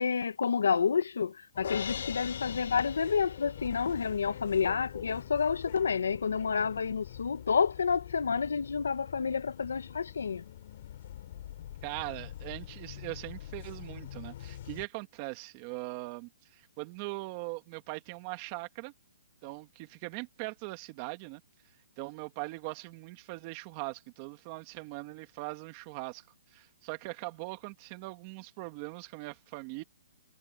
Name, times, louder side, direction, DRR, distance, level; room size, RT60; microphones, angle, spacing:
voice 1, 0.0-10.4, left 6 dB, 90° left, 1.4 m, -29 dB
sound 1, 1.5-14.9, left 12 dB, 45° left, 5.4 m, -45 dB
Crash cymbal, 1.6-3.9, left 7 dB, 70° left, 1.6 m, -40 dB
voice 2, 11.8-18.9 19.4-21.4 22.0-26.3 26.5-29.8, right 23 dB, 30° right, 2.3 m, -41 dB
hypercardioid pair, 165°, 0 cm